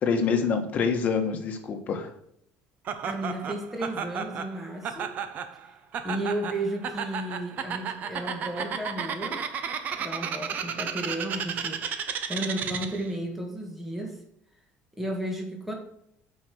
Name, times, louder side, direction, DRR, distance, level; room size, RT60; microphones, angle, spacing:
voice 1, 0.0-2.1, left 5 dB, 35° left, 5 dB, 1.6 m, -26 dB
Laughter, 2.9-13.1, right 7 dB, 40° right, 0.9 m, -33 dB
voice 2, 3.1-5.2 6.0-9.4 10.0-11.8 12.3-14.2 15.0-15.7, right 1 dB, 5° right, 1 dB, 1.8 m, -33 dB
8.6 x 5.7 x 6.5 m, 0.73 s
cardioid pair, 160°, 4 cm